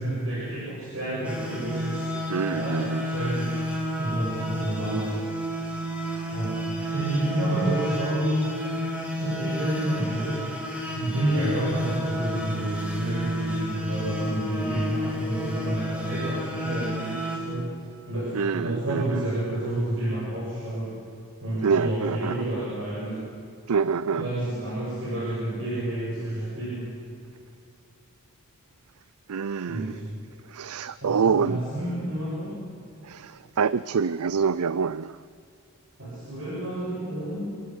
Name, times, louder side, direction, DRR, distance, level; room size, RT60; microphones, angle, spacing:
voice 1, 0.0-2.1 2.5-3.6 4.0-5.2 6.3-8.5 9.1-10.4 10.9-17.7 18.1-20.9 21.4-23.2 24.1-26.9 29.7-30.0 31.0-32.6 36.0-37.4, right 1 dB, 60° right, -7 dB, 7.1 m, -29 dB
sound 1, 1.2-17.4, equal, 5° right, 3.6 m, -31 dB
voice 2, 2.3-3.1 6.1-6.3 18.3-19.2 21.6-22.4 23.7-24.3 29.3-30.0 30.4-31.6 33.0-35.2, right 6 dB, 85° right, 17 dB, 0.5 m, -26 dB
27.0 x 14.5 x 9.5 m, 2.5 s
head